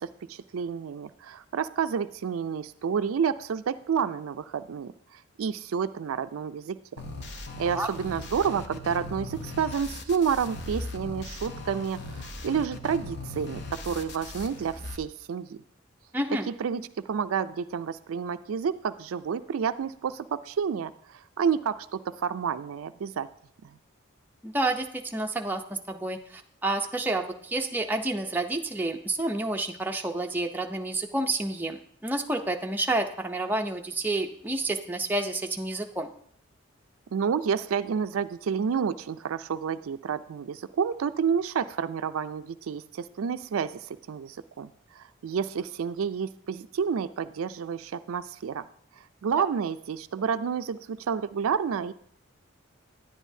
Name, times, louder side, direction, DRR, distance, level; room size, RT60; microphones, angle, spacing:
voice 1, 0.0-7.0 7.6-15.6 16.5-23.3 23.6-23.7 37.1-48.7 49.2-51.9, right 7 dB, 85° right, 12 dB, 0.4 m, -30 dB
sound 1, 7.0-15.0, left 2 dB, 55° left, 0.8 m, -39 dB
voice 2, 16.1-16.5 24.4-36.1 49.4-49.5, right 2 dB, 10° right, 3 dB, 0.5 m, -29 dB
10.0 x 10.0 x 2.7 m, 0.63 s
head